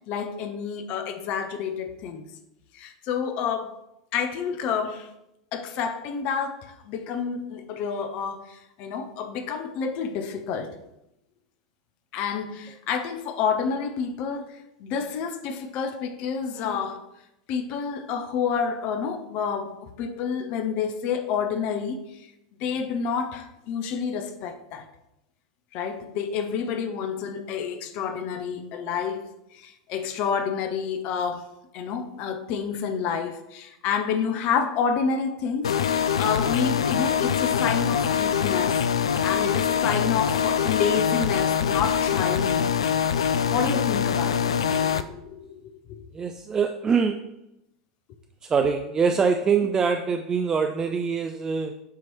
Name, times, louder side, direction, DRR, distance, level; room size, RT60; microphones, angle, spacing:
voice 1, 0.1-2.3 2.7-3.8 4.1-5.1 5.5-10.8 12.1-17.0 17.5-22.3 22.6-24.9 25.7-29.3 29.5-31.5 31.7-42.7 43.4-46.0, left 6 dB, 45° left, 7 dB, 0.7 m, -29 dB
sound 1, 35.6-45.0, left 8 dB, 75° left, 0.3 m, -24 dB
voice 2, 46.1-47.3 48.5-51.8, right 5 dB, 20° right, 6 dB, 0.4 m, -24 dB
7.0 x 3.1 x 4.5 m, 0.86 s
figure-of-eight pair, 85°, 3 cm